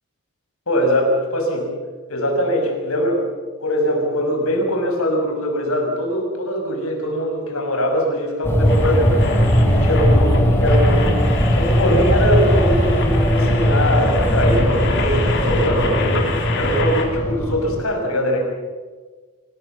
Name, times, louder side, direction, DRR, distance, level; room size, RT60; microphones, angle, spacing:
voice 1, 0.7-1.7 2.1-3.2 3.6-11.1 11.6-13.0 13.3-16.2 16.5-18.4, equal, 80° left, 2 dB, 6.2 m, -21 dB
sound 1, 8.4-17.8, equal, 10° left, 3.5 m, -18 dB
sound 2, 8.7-17.0, left 4 dB, 55° left, 3.6 m, -29 dB
25.5 x 18.5 x 7.5 m, 1.4 s
head